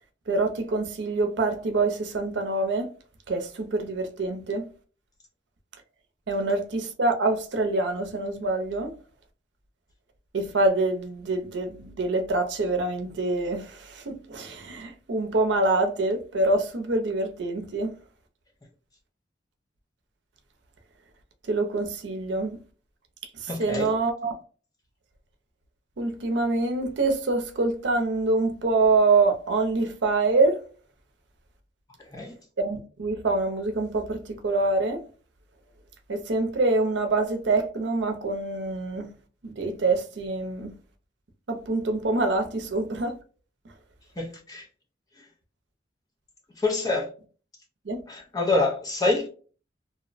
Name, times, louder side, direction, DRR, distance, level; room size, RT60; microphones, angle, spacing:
voice 1, 0.3-2.9 3.3-4.7 6.3-8.9 10.3-17.9 21.5-22.6 23.4-24.3 26.0-30.6 32.6-35.0 36.1-39.1 39.4-40.7 41.5-43.2 47.8-48.0, right 3 dB, 75° right, 0.5 m, -25 dB
voice 2, 23.5-23.9 32.1-32.3 44.2-44.7 45.2-45.3 46.6-47.1 48.1-49.3, left 2 dB, 20° left, 0.4 m, -26 dB
2.7 x 2.0 x 2.4 m
head